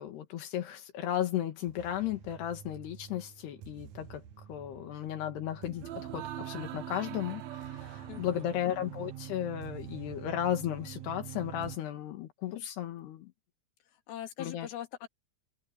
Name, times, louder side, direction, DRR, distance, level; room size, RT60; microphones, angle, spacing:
voice 1, 0.0-4.2 4.5-13.3 14.4-14.7, left 11 dB, 85° left, 3.9 m, -35 dB
sound 1, 1.7-11.8, right 11 dB, 70° right, 1.7 m, -44 dB
voice 2, 8.1-8.4 14.1-15.1, left 11 dB, 70° left, 4.1 m, -41 dB
open air
omnidirectional pair, 4.6 m